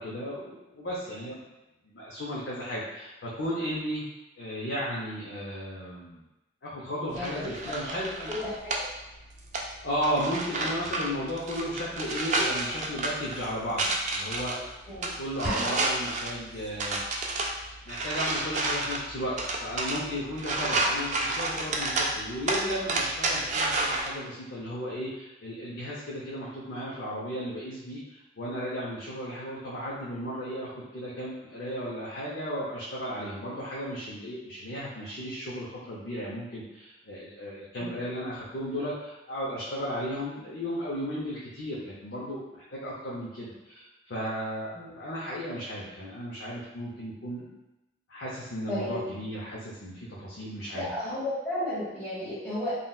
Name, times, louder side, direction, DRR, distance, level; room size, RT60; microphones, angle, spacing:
voice 1, 0.0-1.4 1.8-4.1 4.4-6.2 6.6-8.3 9.8-14.6 15.2-19.4 19.6-44.7 45.0-47.5 48.1-50.9, equal, 70° left, -7 dB, 0.6 m, -35 dB
voice 2, 7.1-7.5 8.3-8.7 14.9-15.1 37.8-37.9 44.7-44.9 48.7-49.0 50.7-52.8, left 1 dB, 15° left, -11 dB, 1.3 m, -33 dB
sound 1, 7.1-24.1, right 2 dB, 40° right, 0.3 m, -31 dB
sound 2, 15.4-16.4, right 1 dB, 60° right, 0.7 m, -34 dB
3.8 x 2.1 x 2.2 m, 0.98 s
head